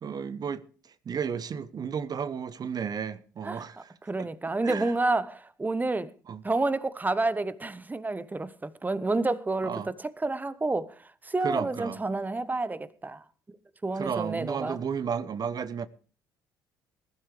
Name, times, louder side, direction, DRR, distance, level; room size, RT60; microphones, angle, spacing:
voice 1, 0.0-3.9 4.2-4.3 4.6-4.9 6.3-6.4 9.6-9.9 11.4-12.0 13.9-15.9, right 7 dB, 40° right, 0.8 m, -33 dB
voice 2, 4.0-6.1 6.4-9.7 10.2-11.0 11.2-13.2 13.8-14.8, right 2 dB, 15° right, 1.1 m, -29 dB
20.5 x 12.0 x 3.3 m
hypercardioid pair, 55°, 10 cm